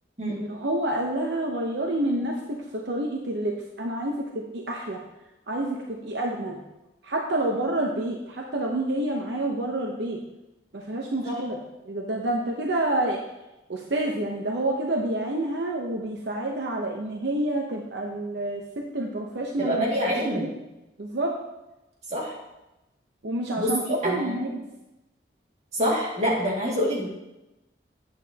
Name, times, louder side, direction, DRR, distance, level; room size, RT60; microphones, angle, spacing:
voice 1, 0.3-2.6 2.9-5.0 5.5-6.6 7.0-10.2 10.7-11.6 11.9-13.2 13.7-18.6 18.9-19.9 20.3-20.5 21.0-21.3 23.2-24.6, right 1 dB, 75° right, 0 dB, 0.8 m, -28 dB
voice 2, 19.6-20.5 22.1-22.3 23.6-24.4 25.7-27.1, equal, 35° right, -5 dB, 2.2 m, -26 dB
8.7 x 8.3 x 2.9 m, 0.96 s
head